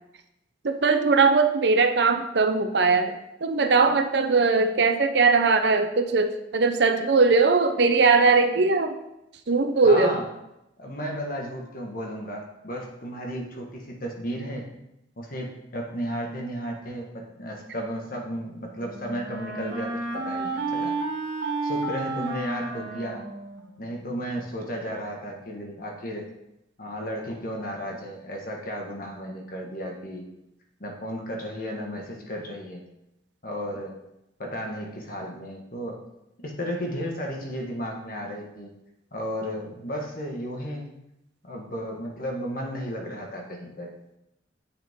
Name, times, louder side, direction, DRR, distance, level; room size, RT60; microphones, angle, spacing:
voice 1, 0.6-8.9 9.5-10.2, right 4 dB, 65° right, 7 dB, 0.7 m, -20 dB
voice 2, 9.8-10.3 10.8-14.6 15.2-20.9 21.6-23.2 23.8-26.3 26.8-30.2 30.8-32.8 33.4-33.9 34.4-36.0 36.4-38.7 39.1-40.9 41.4-43.9, equal, 50° left, 0 dB, 1.5 m, -34 dB
Wind instrument woodwind instrument, 18.3-24.1, right 3 dB, 80° right, 1.9 m, -32 dB
8.1 x 6.5 x 3.7 m, 0.87 s
head